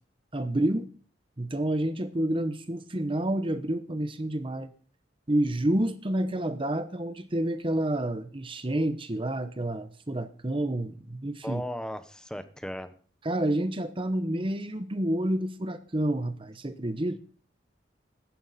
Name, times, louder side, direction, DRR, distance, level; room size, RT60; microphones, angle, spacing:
voice 1, 0.3-0.9 1.4-4.7 5.3-11.6 13.2-17.2, right 1 dB, 30° right, 11 dB, 1.0 m, -29 dB
voice 2, 11.4-12.9, equal, 5° left, 10 dB, 1.1 m, -36 dB
16.5 x 13.0 x 4.2 m, 0.42 s
head